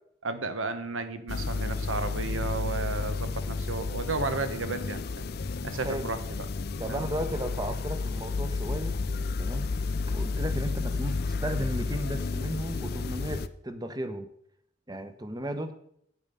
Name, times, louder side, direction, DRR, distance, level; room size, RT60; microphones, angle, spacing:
voice 1, 0.2-5.3 5.6-6.2 6.9-7.0, right 3 dB, 85° right, 10 dB, 1.2 m, -33 dB
sound 1, 1.3-13.5, left 3 dB, 50° left, 0.5 m, -31 dB
voice 2, 5.7-6.1 6.8-9.0 9.4-9.7 10.1-14.3 14.9-15.7, right 1 dB, 20° right, 8 dB, 0.9 m, -35 dB
8.9 x 8.7 x 5.5 m, 0.70 s
head